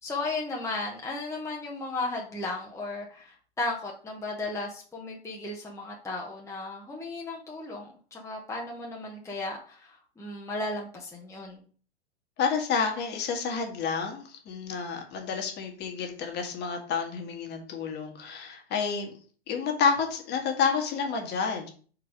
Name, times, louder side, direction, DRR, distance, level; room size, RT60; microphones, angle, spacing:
voice 1, 0.0-11.6, left 2 dB, 10° left, -2 dB, 1.2 m, -35 dB
voice 2, 12.4-19.1 19.5-21.7, left 5 dB, 30° left, 3 dB, 1.6 m, -29 dB
4.6 x 4.6 x 5.1 m, 0.42 s
figure-of-eight pair, 100°, 32 cm